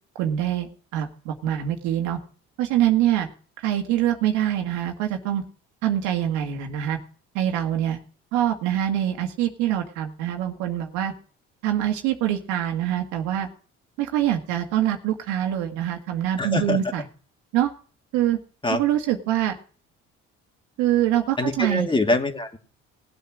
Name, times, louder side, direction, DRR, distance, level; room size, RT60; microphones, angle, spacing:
voice 1, 0.2-2.2 2.6-3.3 3.6-5.4 5.8-7.0 7.3-8.0 8.3-11.1 11.6-13.5 14.0-17.0 17.5-17.7 18.1-18.4 18.7-19.6 20.8-21.9, right 11 dB, 85° right, 4 dB, 2.0 m, -24 dB
voice 2, 16.4-16.8 18.6-18.8 21.4-22.6, left 2 dB, 15° left, 4 dB, 2.5 m, -24 dB
18.5 x 8.2 x 6.3 m, 0.42 s
supercardioid pair, 80°, 29 cm